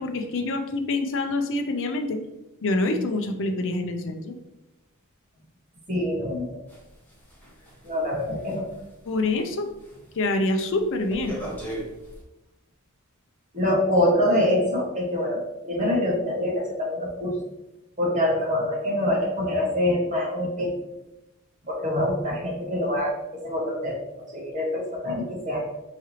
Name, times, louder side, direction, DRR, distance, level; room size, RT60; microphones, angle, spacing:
voice 1, 0.0-2.2 2.6-4.3 9.1-9.7 10.2-11.4, left 2 dB, 60° left, 6 dB, 0.5 m, -26 dB
voice 2, 5.9-6.6 7.8-8.6 13.5-17.3 18.0-20.7 21.7-23.2 23.4-25.6, left 1 dB, 35° right, -4 dB, 1.4 m, -25 dB
sound 1, 6.7-9.5 9.8-10.1 10.5-12.2, right 1 dB, 10° left, 1.2 m, -38 dB
4.8 x 3.2 x 2.8 m, 0.93 s
head